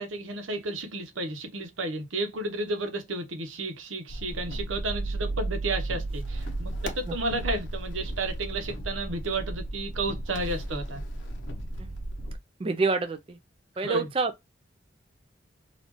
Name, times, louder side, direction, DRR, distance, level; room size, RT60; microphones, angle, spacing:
voice 1, 0.0-11.0 13.8-14.1, right 2 dB, 90° right, 1.0 m, -32 dB
sound 1, 4.1-12.4, right 2 dB, 75° left, 0.8 m, -34 dB
voice 2, 12.6-13.4 13.8-14.3, right 4 dB, 30° right, 0.4 m, -27 dB
4.1 x 2.5 x 2.9 m
head